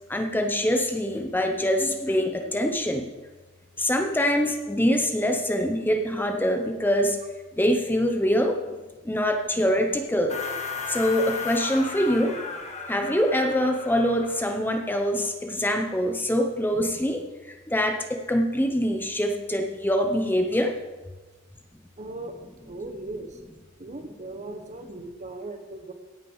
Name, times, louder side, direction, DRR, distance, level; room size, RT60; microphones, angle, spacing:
voice 1, 0.1-3.1 3.8-7.2 7.6-8.6 9.0-10.4 10.9-12.3 12.9-20.7, equal, 10° left, 4 dB, 0.9 m, -24 dB
sound 1, 10.3-14.8, left 5 dB, 35° left, 1.5 m, -35 dB
voice 2, 22.0-23.4 23.8-25.9, right 2 dB, 35° right, 6 dB, 1.2 m, -38 dB
16.5 x 6.4 x 5.6 m, 1.2 s
head